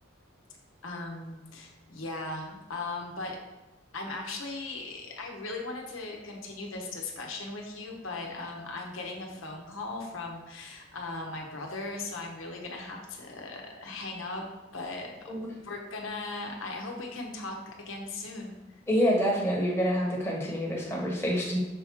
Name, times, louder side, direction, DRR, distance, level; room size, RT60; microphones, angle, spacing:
voice 1, 0.8-3.4 3.9-14.4 14.7-18.6, left 2 dB, 90° left, 1 dB, 1.1 m, -38 dB
voice 2, 18.9-21.6, equal, 10° left, -3 dB, 1.1 m, -27 dB
6.6 x 3.5 x 4.6 m, 1.1 s
head